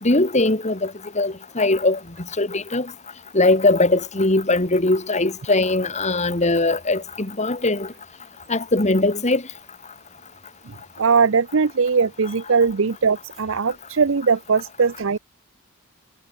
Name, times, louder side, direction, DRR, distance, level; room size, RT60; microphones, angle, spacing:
voice 1, 0.0-2.0 2.4-2.9 3.3-7.9 8.5-9.4, left 2 dB, 35° left, 2.4 m, -20 dB
voice 2, 11.0-15.2, right 5 dB, 65° right, 0.7 m, -20 dB
head